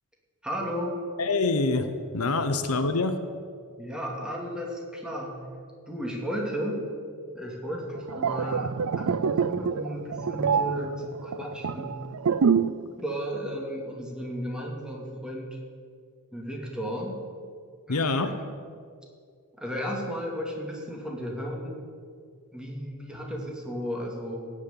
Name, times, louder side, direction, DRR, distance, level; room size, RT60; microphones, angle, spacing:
voice 1, 0.4-1.0 3.8-5.4 5.9-6.8 7.3-11.0 11.2-11.9 12.8-15.6 16.3-17.3 17.9-18.4 19.6-21.7 22.5-24.5, equal, 5° right, -1 dB, 2.5 m, -34 dB
voice 2, 1.2-3.2 17.9-18.4, left 3 dB, 80° left, 8 dB, 1.0 m, -26 dB
sound 1, 8.0-12.9 13.1-13.4, right 6 dB, 70° right, 0.5 m, -26 dB
17.0 x 6.4 x 9.1 m, 2.1 s
head